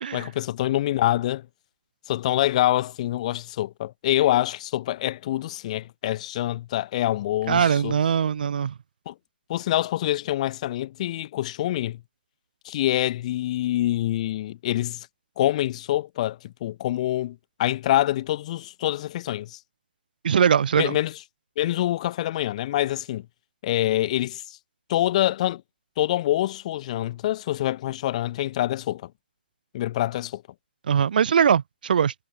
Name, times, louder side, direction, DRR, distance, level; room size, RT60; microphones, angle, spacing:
voice 1, 0.1-1.5 2.1-7.9 9.1-9.2 9.5-12.0 12.6-15.1 15.4-19.6 20.8-21.1 21.6-23.2 23.6-24.6 24.9-25.6 26.0-29.1 29.7-30.4, left 14 dB, 40° left, 0.9 m, -25 dB
voice 2, 7.5-8.7 20.2-21.0 30.9-32.1, right 7 dB, 60° right, 0.8 m, -21 dB
figure-of-eight pair, 130°, 5 cm